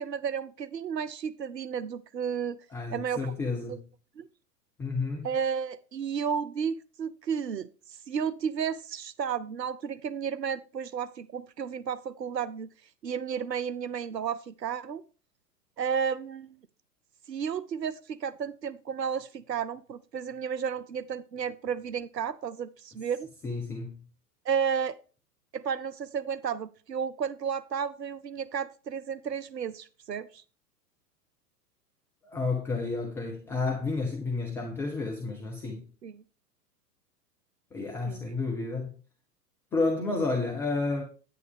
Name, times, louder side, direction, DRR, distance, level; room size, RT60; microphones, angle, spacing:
voice 1, 0.0-2.6 2.9-3.3 3.7-3.8 4.2-4.3 5.2-12.7 13.0-15.0 15.8-16.6 17.3-23.3 24.4-25.0 25.5-30.4 36.0-36.2 38.0-38.2, right 7 dB, 85° right, 0.6 m, -32 dB
voice 2, 2.7-3.8 4.8-5.3 23.4-23.9 32.2-35.8 37.7-38.9 39.7-41.0, left 3 dB, 5° left, 0.4 m, -31 dB
9.3 x 9.3 x 3.5 m
figure-of-eight pair, 100°, 48 cm